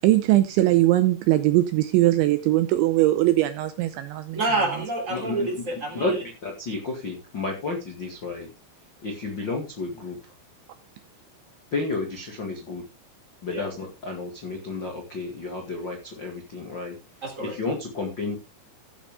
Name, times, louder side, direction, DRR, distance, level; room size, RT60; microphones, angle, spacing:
voice 1, 0.0-4.4, right 16 dB, 80° right, 2.7 m, -20 dB
voice 2, 4.3-6.1 13.5-13.7 17.2-17.6, right 2 dB, 20° right, 2.8 m, -27 dB
voice 3, 5.1-5.5 5.9-8.5 9.0-10.2 11.7-12.8 13.4-17.0 17.4-18.4, left 3 dB, 80° left, 1.0 m, -31 dB
15.5 x 8.1 x 3.6 m
omnidirectional pair, 5.9 m